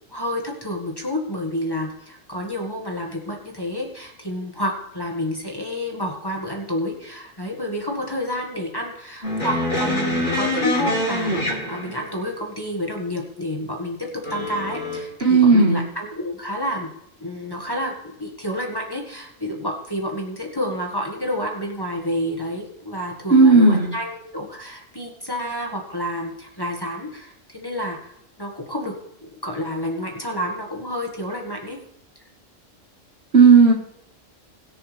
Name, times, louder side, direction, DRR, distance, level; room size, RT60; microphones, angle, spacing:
voice 1, 0.1-16.9 17.2-28.1 28.4-28.9 29.2-31.8, left 1 dB, 20° left, 0 dB, 1.8 m, -29 dB
sound 1, 9.2-12.2 14.2-15.0, left 1 dB, 50° left, 3.9 m, -25 dB
voice 2, 15.2-15.8 23.3-23.9 33.3-33.7, right 4 dB, 50° right, 1 dB, 2.0 m, -13 dB
21.0 x 7.1 x 3.4 m, 0.76 s
omnidirectional pair, 1.3 m